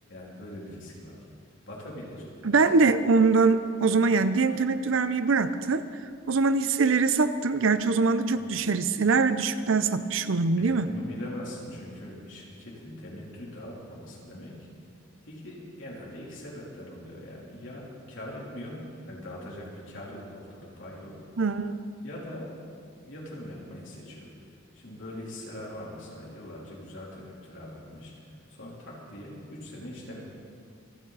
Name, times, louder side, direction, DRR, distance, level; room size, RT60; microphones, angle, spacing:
voice 1, 0.1-1.2 1.7-2.8 8.3-8.5 10.6-14.7 15.2-21.2 22.0-22.5 23.0-24.3 24.7-28.1 28.5-30.2, left 1 dB, 65° left, -5 dB, 3.5 m, -42 dB
voice 2, 2.4-5.8 6.3-10.9 21.4-21.9, right 4 dB, 75° right, 12 dB, 0.6 m, -23 dB
26.5 x 9.2 x 4.1 m, 2.3 s
head